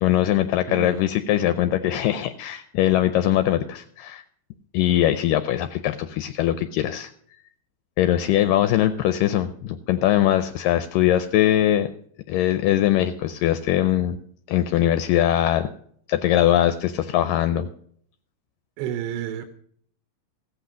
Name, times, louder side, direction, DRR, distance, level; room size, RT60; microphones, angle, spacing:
voice 1, 0.0-4.2 4.7-7.1 8.0-11.9 12.3-14.2 14.5-15.7 16.1-17.7, left 12 dB, 80° left, 10 dB, 2.1 m, -21 dB
voice 2, 0.7-1.0 18.8-19.5, right 10 dB, 85° right, 8 dB, 2.6 m, -30 dB
15.0 x 8.2 x 6.2 m, 0.62 s
omnidirectional pair, 4.1 m